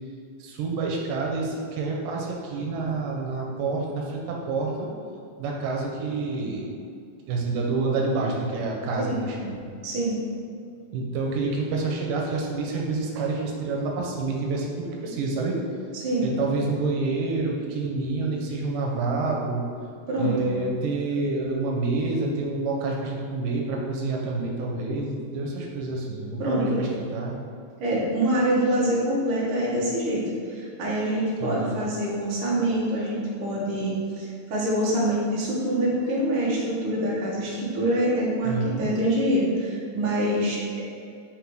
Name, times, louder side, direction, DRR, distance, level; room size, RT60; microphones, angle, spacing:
voice 1, 0.4-4.9 5.4-6.7 7.3-9.6 10.9-15.6 16.2-19.6 20.2-27.4 31.4-31.7 38.4-38.9, right 3 dB, 85° right, -1 dB, 2.5 m, -28 dB
voice 2, 9.8-10.2 15.9-16.3 20.1-20.5 26.4-26.8 27.8-30.2 30.5-40.8, right 1 dB, 50° right, -6 dB, 1.8 m, -25 dB
5.4 x 3.9 x 4.6 m, 2.4 s
omnidirectional pair, 3.8 m